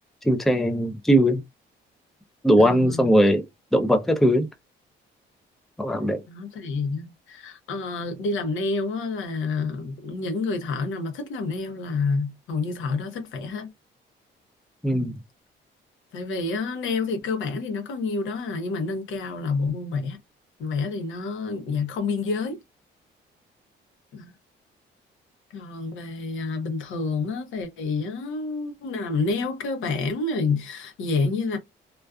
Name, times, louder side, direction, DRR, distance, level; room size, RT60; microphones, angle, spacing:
voice 1, 0.2-1.4 2.4-3.4 3.7-4.5 5.8-6.2 14.8-15.2, equal, ahead, 0.4 m, -20 dB
voice 2, 2.6-3.1 6.3-13.7 14.9-15.2 16.1-20.2 20.6-22.6 24.1-24.3 25.5-31.6, left 4 dB, 80° left, 0.8 m, -28 dB
2.4 x 2.3 x 2.3 m
cardioid pair, 90°, 20 cm